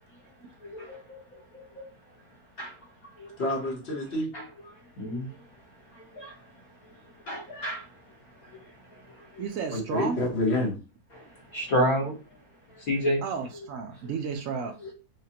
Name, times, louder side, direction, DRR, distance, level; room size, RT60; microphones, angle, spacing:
voice 1, 0.6-1.9 2.6-2.7 3.2-3.3 4.3-4.4 5.0-5.3 6.0-6.4 7.3-7.8 9.3-9.5 11.5-12.1 12.9-13.2 13.5-13.7 14.0-14.1 14.8-14.9, equal, 70° left, 1.8 m, -30 dB
voice 2, 3.4-4.3 9.7-10.8, left 1 dB, 50° left, 1.1 m, -28 dB
voice 3, 9.4-10.2 13.2-14.8, right 5 dB, 70° right, 0.9 m, -32 dB
4.9 x 2.1 x 2.8 m
omnidirectional pair, 1.6 m